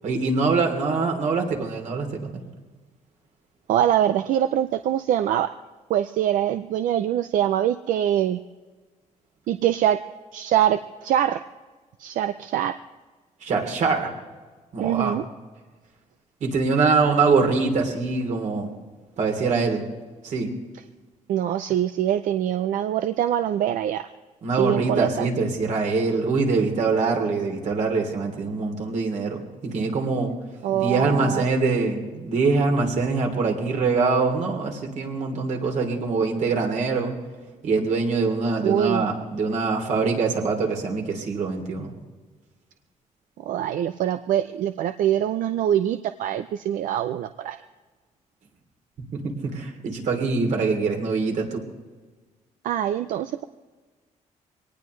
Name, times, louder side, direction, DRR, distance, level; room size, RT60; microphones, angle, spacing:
voice 1, 0.0-2.4 13.4-14.1 14.7-15.2 16.4-18.7 19.2-19.8 20.2-20.5 24.4-30.3 30.7-37.1 37.6-41.9 49.1-51.6, right 4 dB, 65° right, 2 dB, 3.1 m, -24 dB
voice 2, 3.7-5.5 5.9-8.4 9.5-10.0 10.3-11.4 12.0-12.8 14.8-15.2 21.3-24.1 24.6-25.3 30.6-31.4 38.6-39.1 43.4-47.6 52.6-53.4, right 11 dB, 90° right, 9 dB, 0.5 m, -24 dB
23.0 x 18.5 x 3.2 m, 1.3 s
cardioid pair, 135°, 13 cm